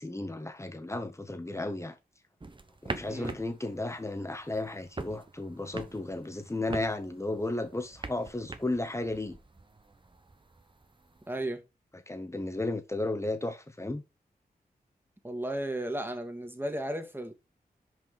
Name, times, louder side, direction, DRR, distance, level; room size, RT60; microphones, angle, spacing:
voice 1, 0.0-1.9 2.8-9.4 12.1-14.0, left 2 dB, 20° left, 1.6 m, -34 dB
sound 1, 2.4-11.5, right 3 dB, 30° right, 1.0 m, -44 dB
voice 2, 11.3-11.6 15.2-17.3, right 1 dB, 15° right, 2.1 m, -34 dB
6.2 x 5.2 x 5.1 m
cardioid pair, 65°, 16 cm